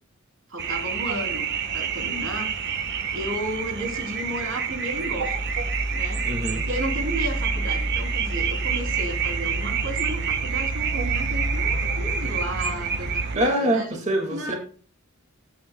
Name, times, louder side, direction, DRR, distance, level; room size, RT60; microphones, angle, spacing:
voice 1, 0.5-2.5 3.1-5.5 5.9-6.2 6.6-14.0 14.3-14.6, right 1 dB, 75° right, 3 dB, 3.0 m, -33 dB
sound 1, 0.6-13.4, right 5 dB, 55° right, 1.2 m, -27 dB
voice 2, 6.2-6.6 13.4-14.6, right 1 dB, 35° right, 2 dB, 1.9 m, -24 dB
17.0 x 10.5 x 2.2 m, 0.42 s
head